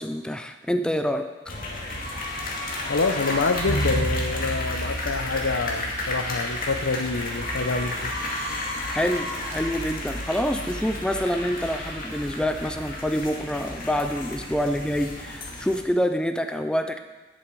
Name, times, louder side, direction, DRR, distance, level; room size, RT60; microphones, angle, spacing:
voice 1, 0.0-1.3 8.9-17.0, equal, 5° left, 8 dB, 0.3 m, -26 dB
sound 1, 1.5-15.8, left 1 dB, 45° left, 2.2 m, -31 dB
voice 2, 2.9-8.1, left 3 dB, 70° left, 9 dB, 0.8 m, -27 dB
18.5 x 7.2 x 4.6 m, 1.3 s
head